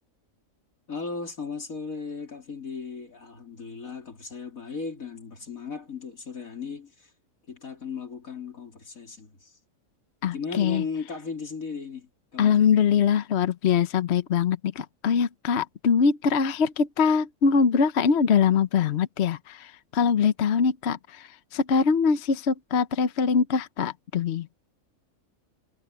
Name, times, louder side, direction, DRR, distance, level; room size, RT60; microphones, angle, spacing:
voice 1, 0.9-7.1 7.5-9.6 10.3-12.7, left 5 dB, 90° left, 3.9 m, -36 dB
voice 2, 10.2-10.8 12.4-24.5, left 6 dB, 55° left, 1.1 m, -23 dB
omnidirectional pair, 1.4 m